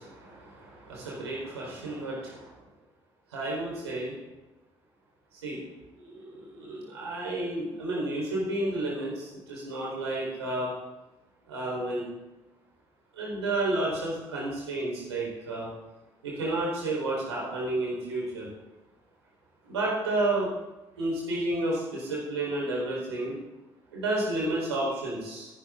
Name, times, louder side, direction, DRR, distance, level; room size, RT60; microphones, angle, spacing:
voice 1, 0.0-2.5 3.3-4.2 5.4-5.6 6.0-10.7 11.5-12.1 13.1-15.7 16.2-18.5 19.6-20.5 21.0-23.4 23.9-25.5, right 2 dB, 80° right, -3 dB, 4.5 m, -31 dB
21.0 x 12.0 x 3.9 m, 1.0 s
figure-of-eight pair, 45°, 14 cm